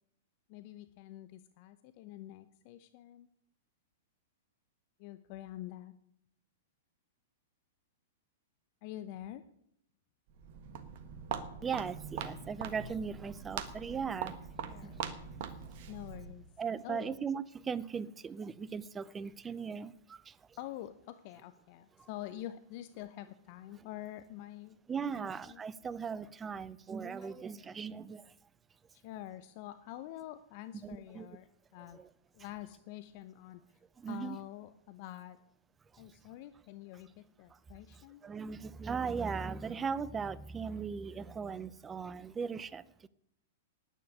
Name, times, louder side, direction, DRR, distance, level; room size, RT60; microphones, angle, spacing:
voice 1, 0.5-3.3 5.0-5.9 8.8-9.5 14.6-15.0 15.9-16.5 16.8-17.2 20.6-24.8 25.1-25.6 27.2-27.7 28.9-32.0 32.3-33.6 34.1-35.4 36.0-38.2, left 14 dB, 45° left, 0.8 m, -47 dB
Walk footsteps, 10.3-16.4, right 7 dB, 50° right, 1.5 m, -42 dB
voice 2, 11.6-14.4 14.8-15.0 16.6-20.6 22.0-22.1 24.9-28.3 30.8-31.3 31.9-32.1 34.0-34.4 35.9-36.0 37.9-43.1, right 6 dB, 20° right, 0.7 m, -38 dB
9.9 x 9.5 x 9.6 m
figure-of-eight pair, 105°, 0 cm